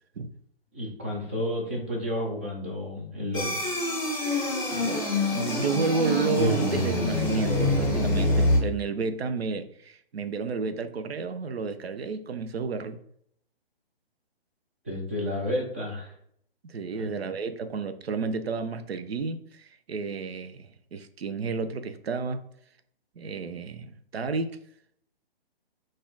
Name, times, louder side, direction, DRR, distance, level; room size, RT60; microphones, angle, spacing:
voice 1, 0.7-3.6 14.8-16.1 17.0-17.1, left 1 dB, 15° right, -1 dB, 0.3 m, -31 dB
sound 1, 3.3-8.6, left 2 dB, 5° left, 1.1 m, -25 dB
voice 2, 4.2-5.0 5.3-13.0 16.6-22.4 23.2-24.6, right 4 dB, 80° right, 10 dB, 0.5 m, -31 dB
4.0 x 2.5 x 3.8 m, 0.68 s
figure-of-eight pair, 135°, 31 cm